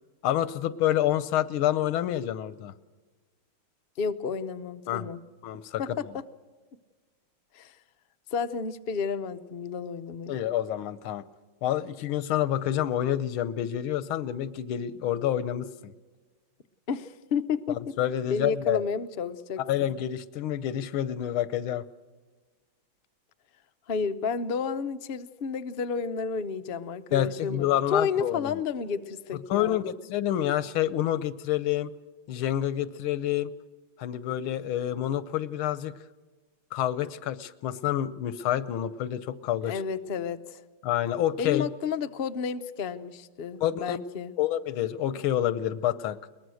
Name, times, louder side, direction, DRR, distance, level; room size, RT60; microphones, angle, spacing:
voice 1, 0.2-2.7 4.9-5.1 5.4-5.8 10.3-11.2 11.6-15.9 17.7-18.8 19.7-21.8 27.1-28.6 29.5-31.9 32.3-33.5 34.0-35.9 36.7-39.7 40.8-41.7 43.6-44.0 44.4-46.2, left 12 dB, 85° left, 16 dB, 1.7 m, -28 dB
voice 2, 4.0-5.2 5.8-6.2 7.5-7.8 8.3-10.4 16.9-17.8 18.3-19.9 23.9-29.8 39.6-40.6 41.4-44.3, left 6 dB, 65° left, 8 dB, 0.5 m, -31 dB
22.5 x 19.5 x 6.3 m, 1.3 s
omnidirectional pair, 2.2 m